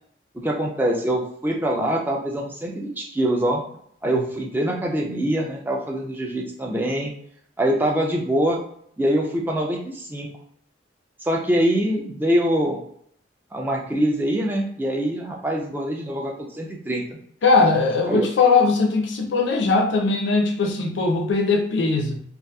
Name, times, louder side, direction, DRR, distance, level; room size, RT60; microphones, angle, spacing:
voice 1, 0.4-3.6 4.0-7.1 7.6-8.6 9.0-10.3 11.2-12.8 13.5-17.2 18.1-18.3, right 1 dB, 10° right, -1 dB, 0.3 m, -24 dB
voice 2, 17.4-22.2, left 4 dB, 65° left, 3 dB, 0.4 m, -20 dB
2.7 x 2.3 x 2.2 m, 0.66 s
head